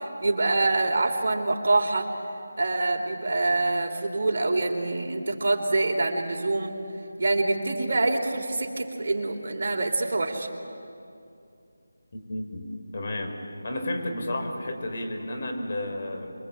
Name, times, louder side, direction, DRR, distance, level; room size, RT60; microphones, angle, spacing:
voice 1, 0.0-2.1 2.6-6.7 7.2-10.5, right 2 dB, 50° right, 2 dB, 3.5 m, -25 dB
voice 2, 12.1-13.4 13.6-16.3, left 1 dB, 45° left, 3 dB, 4.5 m, -32 dB
28.5 x 23.5 x 8.9 m, 2.6 s
figure-of-eight pair, 170°, 0 cm